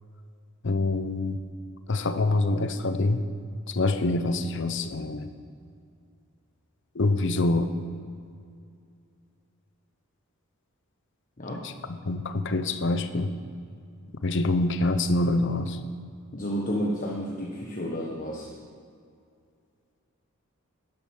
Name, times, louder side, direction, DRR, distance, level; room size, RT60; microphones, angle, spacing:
voice 1, 0.6-1.5 1.9-3.2 3.7-5.3 6.9-7.7 11.6-13.3 14.2-15.8, left 2 dB, 55° left, 10 dB, 0.7 m, -26 dB
voice 2, 16.3-18.5, equal, 35° left, -2 dB, 1.2 m, -31 dB
10.5 x 10.0 x 6.4 m, 2.4 s
head